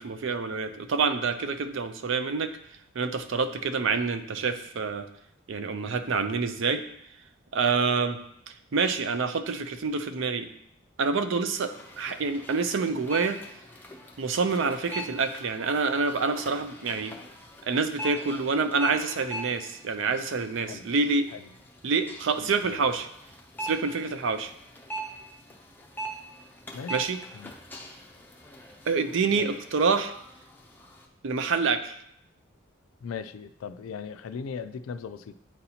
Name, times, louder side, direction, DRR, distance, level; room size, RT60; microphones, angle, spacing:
voice 1, 0.0-2.5 3.0-5.1 5.5-6.8 7.5-8.2 8.7-10.5 11.0-13.4 14.2-17.1 17.6-21.3 21.8-23.1 23.6-24.5 26.9-27.2 28.9-30.1 31.2-32.0, right 4 dB, 65° right, 10 dB, 0.5 m, -27 dB
sound 1, 11.6-31.1, right 1 dB, 10° left, 0.5 m, -42 dB
voice 2, 22.4-22.8 26.7-27.0 27.3-27.5 29.4-29.6 33.0-35.3, left 6 dB, 80° left, 13 dB, 0.3 m, -38 dB
8.7 x 4.1 x 2.8 m, 0.73 s
head